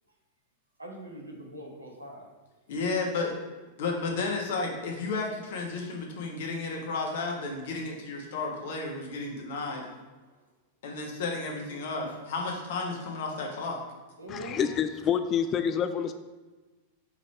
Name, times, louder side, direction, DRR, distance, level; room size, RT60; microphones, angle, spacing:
voice 1, 0.8-2.3 10.2-10.4 12.0-12.2 14.2-14.6, equal, 85° right, -1 dB, 1.2 m, -43 dB
voice 2, 2.7-3.3 3.8-9.9 10.8-13.8, left 3 dB, 55° left, 1 dB, 1.2 m, -32 dB
voice 3, 14.3-16.1, left 8 dB, 30° left, 9 dB, 0.3 m, -27 dB
4.9 x 4.1 x 4.8 m, 1.2 s
figure-of-eight pair, 90°, 0 cm